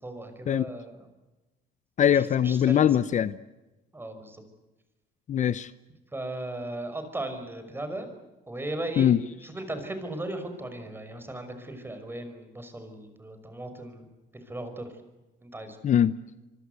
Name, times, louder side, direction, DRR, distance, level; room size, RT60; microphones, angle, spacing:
voice 1, 0.0-1.1 2.1-3.1 3.9-4.4 6.1-8.1 8.5-9.1 9.4-14.1 14.3-14.9 15.4-15.8, right 1 dB, 15° right, 8 dB, 5.9 m, -37 dB
voice 2, 2.0-3.4 5.3-5.7 9.0-9.2 15.8-16.1, left 9 dB, 45° left, 15 dB, 0.8 m, -22 dB
25.0 x 24.0 x 8.2 m, 1.1 s
cardioid pair, 110°, 17 cm